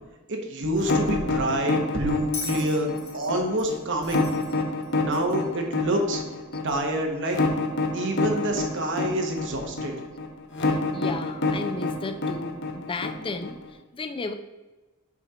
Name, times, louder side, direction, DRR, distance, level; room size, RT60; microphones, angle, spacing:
voice 1, 0.3-4.3 5.0-6.2 6.6-7.4 7.9-10.0, right 1 dB, 60° right, 3 dB, 1.2 m, -27 dB
sound 1, 0.8-13.7, left 3 dB, 60° left, 0.9 m, -27 dB
Bell, 2.3-5.5 6.7-6.8, left 4 dB, 80° left, 1.7 m, -39 dB
voice 2, 10.6-14.3, left 3 dB, 25° left, 8 dB, 0.4 m, -34 dB
6.1 x 4.3 x 4.9 m, 1.1 s
head